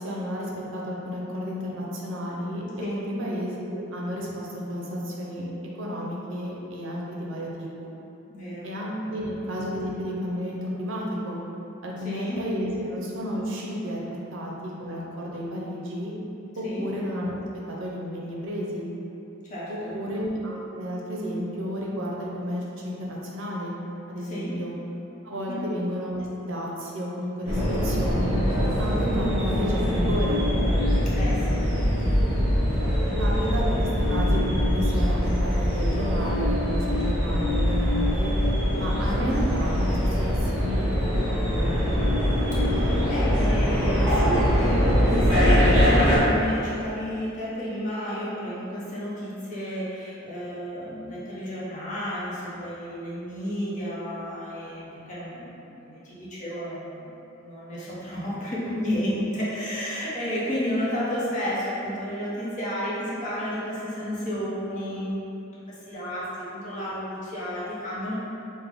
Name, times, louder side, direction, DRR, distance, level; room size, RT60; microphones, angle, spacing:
voice 1, 0.0-7.9 8.6-11.4 11.8-14.0 14.3-16.1 16.6-17.4 17.7-18.9 19.7-23.7 24.1-24.7 25.2-28.4 28.8-30.4 33.2-38.3 38.8-41.8, equal, 65° right, -3 dB, 0.6 m, -32 dB
voice 2, 8.3-8.7 9.0-9.2 12.0-12.4 12.8-12.9 16.6-16.8 19.4-19.9 24.3-24.5 25.3-25.6 31.1-31.6 32.0-32.1 32.5-32.9 42.5-57.1 57.4-65.2 65.7-68.1, equal, 35° left, -8 dB, 0.8 m, -32 dB
sound 1, 27.5-46.2, equal, 5° right, 1.1 m, -23 dB
3.6 x 2.1 x 3.4 m, 2.9 s
head